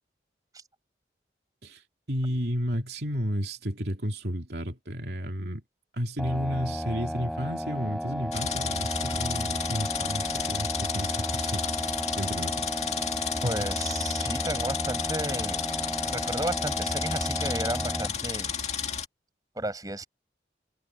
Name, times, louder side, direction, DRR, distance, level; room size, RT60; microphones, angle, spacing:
voice 1, 1.6-5.6 5.9-12.9 13.4-13.7, equal, 65° right, 2.7 m, -32 dB
sound 1, 6.2-18.1, equal, ahead, 5.1 m, -33 dB
sound 2, 8.3-19.1, left 7 dB, 35° left, 2.1 m, -32 dB
voice 2, 13.4-15.6 16.1-18.5 19.6-20.1, right 1 dB, 20° right, 6.3 m, -33 dB
head